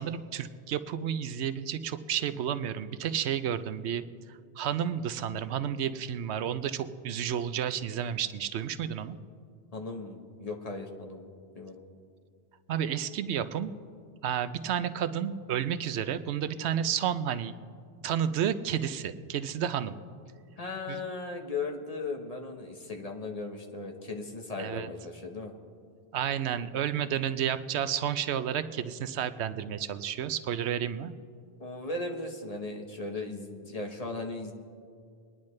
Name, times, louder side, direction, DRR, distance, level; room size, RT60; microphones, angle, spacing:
voice 1, 0.0-4.0 4.3-9.2 12.7-13.7 14.2-17.5 18.0-20.0 20.9-21.0 24.6-24.9 26.1-31.1, right 9 dB, 85° right, 12 dB, 0.9 m, -31 dB
voice 2, 9.7-11.3 11.5-11.8 20.6-25.5 31.6-34.5, left 3 dB, 35° left, 2 dB, 1.1 m, -37 dB
24.5 x 10.5 x 3.2 m, 2.3 s
omnidirectional pair, 1.1 m